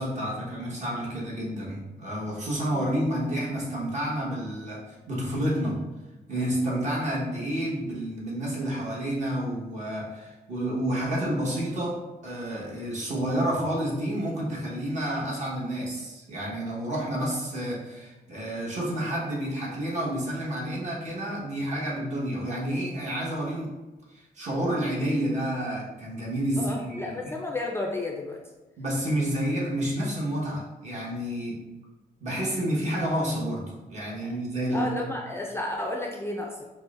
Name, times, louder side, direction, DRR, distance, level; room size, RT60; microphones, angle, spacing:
voice 1, 0.0-5.8 6.3-23.7 24.1-27.3 28.8-31.6 32.2-34.9, right 1 dB, 50° right, -5 dB, 1.2 m, -30 dB
voice 2, 26.6-28.4 34.2-34.3 34.7-36.6, left 2 dB, 15° left, 0 dB, 0.4 m, -32 dB
5.3 x 2.1 x 2.5 m, 1.1 s
cardioid pair, 100°, 16 cm